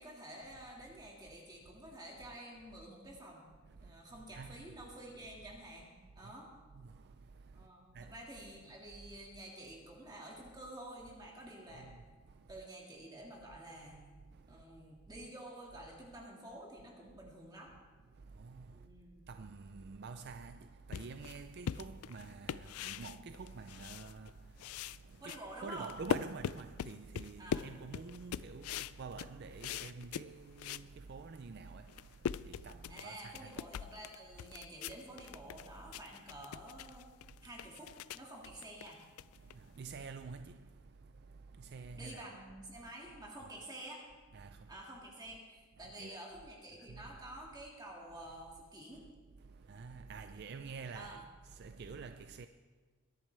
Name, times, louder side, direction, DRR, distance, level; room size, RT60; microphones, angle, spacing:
voice 1, 0.0-3.5 3.8-6.5 7.5-11.9 12.5-14.0 14.5-17.7 18.7-19.2 25.2-25.9 27.4-27.7 32.9-37.1 37.4-39.0 42.0-44.0 44.7-49.0 50.9-51.2, right 1 dB, 20° right, 2.0 m, -50 dB
voice 2, 4.3-4.8 6.2-6.4 6.7-7.7 7.9-8.2 11.7-12.6 14.3-14.6 18.1-18.9 19.3-33.5 37.4-37.6 39.4-42.3 42.8-42.9 43.4-43.5 44.3-44.8 45.8-46.2 46.8-47.2 48.9-49.0 49.4-52.5, right 4 dB, 50° right, 0.4 m, -49 dB
sound 1, 20.9-24.3 24.6-30.9 31.3-31.4 31.8-39.9, left 8 dB, 80° left, 0.3 m, -42 dB
22.0 x 10.5 x 3.4 m
head